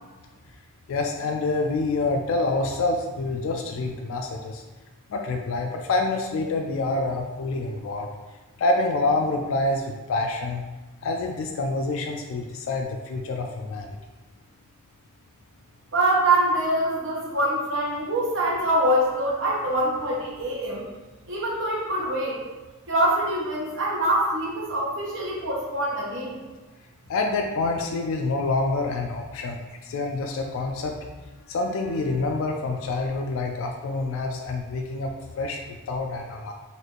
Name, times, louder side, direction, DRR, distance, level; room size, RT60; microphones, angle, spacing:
voice 1, 0.9-4.6 5.1-8.1 8.6-10.6 11.0-14.0 27.1-31.0 31.5-36.5, left 2 dB, 65° left, 3 dB, 0.3 m, -27 dB
voice 2, 15.9-20.8 21.3-22.4 22.9-26.4, right 1 dB, 60° right, -3 dB, 0.9 m, -24 dB
4.0 x 2.5 x 3.1 m, 1.2 s
head